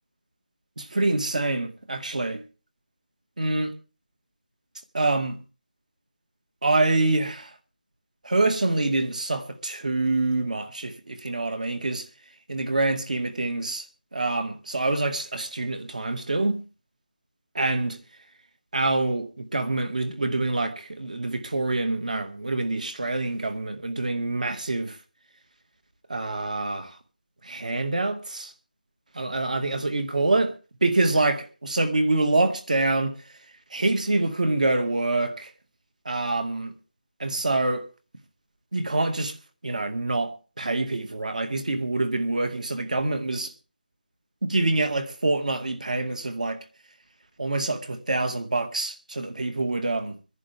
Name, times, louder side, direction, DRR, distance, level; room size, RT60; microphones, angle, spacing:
voice 1, 0.8-2.4 3.4-3.7 4.9-5.4 6.6-7.5 8.2-12.1 12.5-13.9 14.1-16.6 17.5-17.9 18.7-25.0 26.1-27.0 27.4-28.5 29.1-30.5 30.8-33.1 33.7-35.5 36.1-36.7 37.2-37.8 38.7-39.3 39.6-43.5 44.4-46.6 47.4-50.2, right 2 dB, 45° right, 2.1 m, -26 dB
25.5 x 10.5 x 3.6 m
figure-of-eight pair, 180°, 5 cm